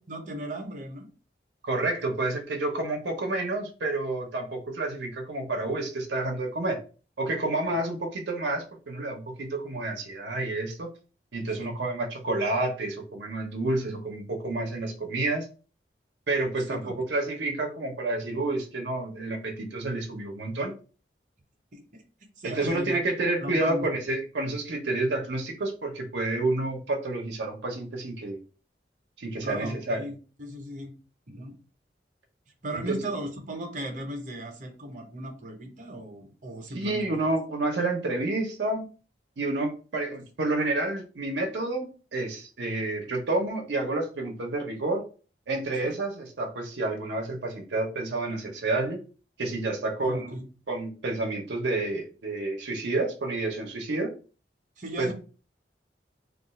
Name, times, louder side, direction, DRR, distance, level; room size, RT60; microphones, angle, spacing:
voice 1, 0.1-1.1 2.0-2.1 11.6-11.7 16.7-16.9 21.7-21.8 22.4-23.0 23.4-23.9 29.4-30.9 31.3-31.6 32.6-37.2 45.8-45.9 50.0-50.4 54.8-55.1, right 1 dB, 45° right, 3 dB, 0.8 m, -37 dB
voice 2, 1.6-6.8 7.2-10.9 11.3-15.5 16.3-20.7 22.4-28.4 29.2-30.0 32.9-33.0 36.7-38.8 39.4-45.0 45.5-49.0 49.4-50.4 50.7-54.1 55.0-55.1, right 2 dB, 85° right, 1 dB, 0.7 m, -29 dB
2.4 x 2.3 x 4.0 m, 0.37 s
head